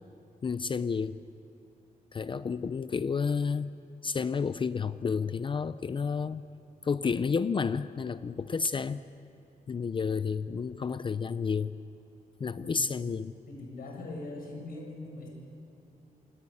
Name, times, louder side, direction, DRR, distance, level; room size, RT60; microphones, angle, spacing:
voice 1, 0.4-1.2 2.1-3.7 4.0-6.4 6.8-9.0 9.7-11.8 12.4-13.4, left 5 dB, 35° left, 13 dB, 0.5 m, -31 dB
voice 2, 12.5-12.9 13.5-15.3, left 2 dB, 75° left, 1 dB, 7.2 m, -41 dB
27.5 x 19.5 x 9.7 m, 2.9 s
wide cardioid pair, 180°, 15 cm